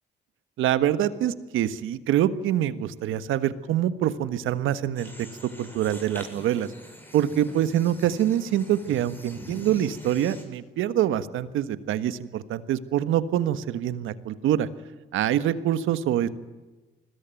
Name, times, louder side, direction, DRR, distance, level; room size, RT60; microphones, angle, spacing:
voice 1, 0.6-6.7 7.1-14.7 15.1-16.3, right 11 dB, 85° right, 13 dB, 1.5 m, -25 dB
sound 1, 5.0-10.4, equal, 10° left, 7.2 m, -44 dB
29.0 x 21.5 x 9.2 m, 1.2 s
cardioid pair, 90°, 20 cm